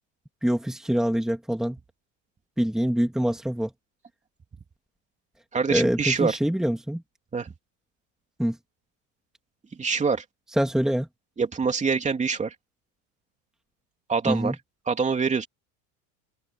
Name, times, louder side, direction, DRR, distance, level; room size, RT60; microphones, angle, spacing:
voice 1, 0.4-1.8 2.6-3.7 5.7-7.0 8.4-8.6 10.6-11.1 14.3-14.6, equal, ahead, 2.5 m, -25 dB
voice 2, 5.5-6.4 7.3-7.5 9.8-10.2 11.4-12.5 14.1-14.5 14.9-15.5, right 5 dB, 15° right, 3.0 m, -25 dB
open air
supercardioid pair, 140°, 40 cm